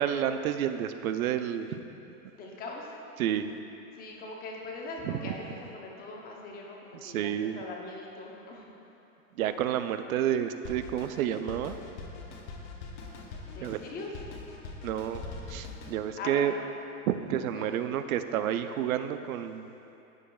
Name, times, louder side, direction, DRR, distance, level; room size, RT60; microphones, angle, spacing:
voice 1, 0.0-1.8 3.2-3.5 5.0-5.3 7.0-7.6 9.3-11.8 13.6-13.8 14.8-16.5 17.1-19.7, right 10 dB, 90° right, 10 dB, 0.6 m, -30 dB
voice 2, 2.3-2.9 3.9-8.7 13.5-14.1 16.2-16.6 17.5-17.7, left 3 dB, 20° left, -1 dB, 0.8 m, -41 dB
Drum kit, 10.6-16.0, left 3 dB, 45° left, 1.0 m, -42 dB
14.0 x 4.9 x 2.3 m, 2.8 s
supercardioid pair, 155°, 41 cm